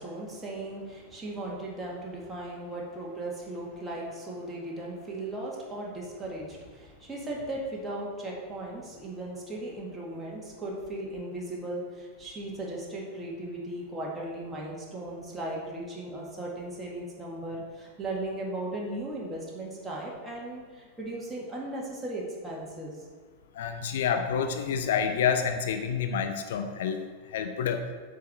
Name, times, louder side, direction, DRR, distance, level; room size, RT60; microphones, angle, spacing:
voice 1, 0.0-23.0, right 1 dB, 10° right, -4 dB, 2.0 m, -37 dB
voice 2, 23.5-27.0 27.3-27.9, left 7 dB, 60° left, 7 dB, 0.6 m, -28 dB
8.3 x 4.6 x 6.0 m, 1.5 s
figure-of-eight pair, 90°, 0 cm